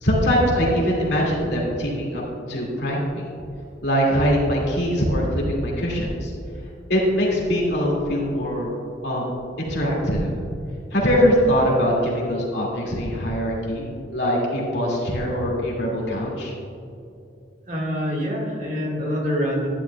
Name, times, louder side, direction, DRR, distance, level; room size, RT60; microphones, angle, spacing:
voice 1, 0.0-3.3 3.8-6.3 6.9-8.7 9.0-9.3 9.6-10.3 10.9-16.5, equal, 65° left, -3 dB, 2.3 m, -22 dB
voice 2, 17.7-19.7, equal, 45° right, -2 dB, 1.8 m, -25 dB
11.5 x 10.5 x 2.3 m, 2.6 s
head